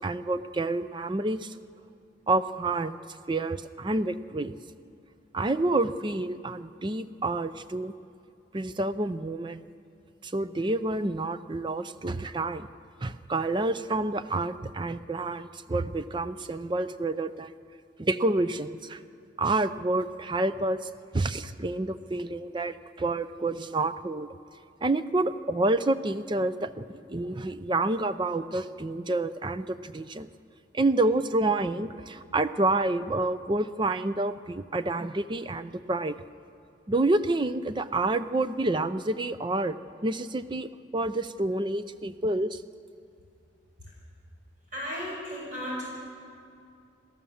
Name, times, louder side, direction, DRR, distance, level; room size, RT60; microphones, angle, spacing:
voice 1, 0.0-1.5 2.3-3.0 3.3-4.6 5.3-7.9 8.5-9.6 10.2-12.7 13.0-17.5 18.0-19.0 19.4-20.9 21.1-24.3 24.8-30.3 30.7-36.2 36.9-39.8 40.0-42.6, right 2 dB, 25° right, 12 dB, 0.5 m, -28 dB
voice 2, 44.7-45.9, equal, 45° right, -4 dB, 5.6 m, -34 dB
28.5 x 13.5 x 7.1 m, 2.5 s
head